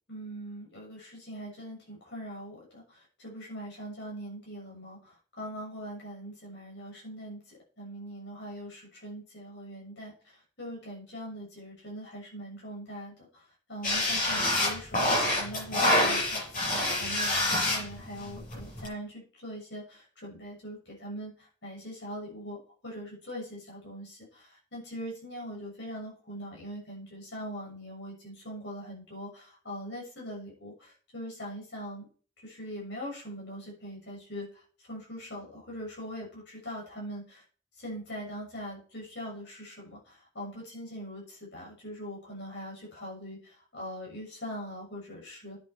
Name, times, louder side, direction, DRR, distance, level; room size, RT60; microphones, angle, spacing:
voice 1, 0.1-7.4 7.8-32.1 32.4-37.4 37.8-45.6, equal, 60° left, -3 dB, 6.9 m, -42 dB
sound 1, 13.8-18.9, left 1 dB, 45° left, 6.7 m, -27 dB
10.5 x 8.9 x 4.5 m, 0.41 s
head